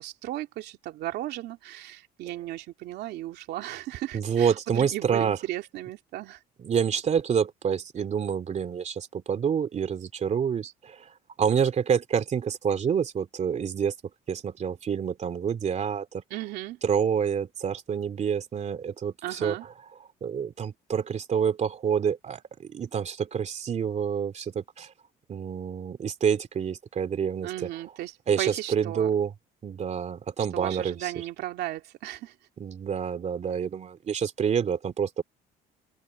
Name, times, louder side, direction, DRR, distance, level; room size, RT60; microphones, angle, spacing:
voice 1, 0.0-6.4 16.3-16.8 19.2-19.7 27.4-29.1 30.5-32.3, right 15 dB, 80° right, 2.7 m, -35 dB
voice 2, 4.1-5.4 6.6-11.1 11.4-13.9 14.3-16.2 16.8-19.6 20.2-24.9 25.3-27.7 28.3-29.3 29.6-31.1 32.6-35.2, right 7 dB, 45° right, 2.9 m, -27 dB
cardioid pair, 110°, 17 cm